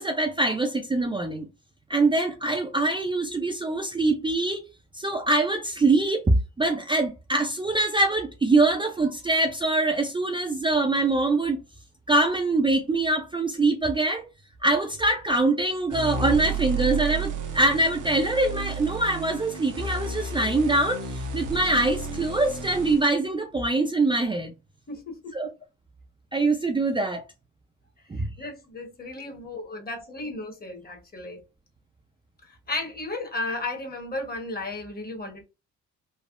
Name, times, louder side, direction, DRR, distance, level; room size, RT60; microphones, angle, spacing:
voice 1, 0.0-1.5 1.9-4.6 4.9-6.3 6.6-11.6 12.1-14.3 14.6-24.5 25.3-25.5 26.3-27.2 28.1-28.3, right 2 dB, 15° right, 0.4 m, -24 dB
sound 1, 15.9-23.1, right 4 dB, 80° right, 0.8 m, -32 dB
voice 2, 24.9-25.3 28.1-31.4 32.7-35.4, left 2 dB, 30° left, 1.1 m, -34 dB
3.4 x 2.0 x 2.4 m
cardioid pair, 90°, 30 cm